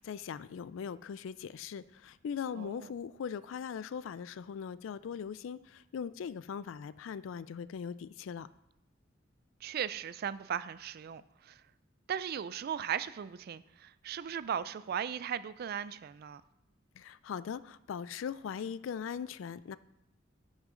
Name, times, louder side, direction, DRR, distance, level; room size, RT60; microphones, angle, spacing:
voice 1, 0.0-8.5 16.9-19.8, left 7 dB, 80° left, 0.3 m, -40 dB
voice 2, 2.6-2.9 9.6-11.6 12.1-16.4, right 8 dB, 55° right, 0.3 m, -37 dB
10.5 x 6.4 x 3.7 m
head